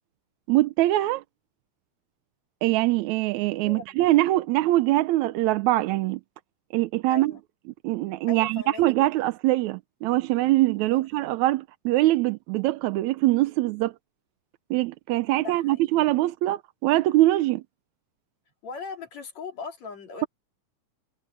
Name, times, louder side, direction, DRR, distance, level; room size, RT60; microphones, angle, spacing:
voice 1, 0.5-1.2 2.6-6.2 6.7-7.3 7.8-13.9 14.7-17.6, right 16 dB, 80° right, 1.9 m, -23 dB
voice 2, 3.6-3.9 7.1-7.4 8.3-8.8 10.9-11.1 15.3-15.8 18.6-20.3, left 4 dB, 65° left, 4.5 m, -39 dB
omnidirectional pair, 3.4 m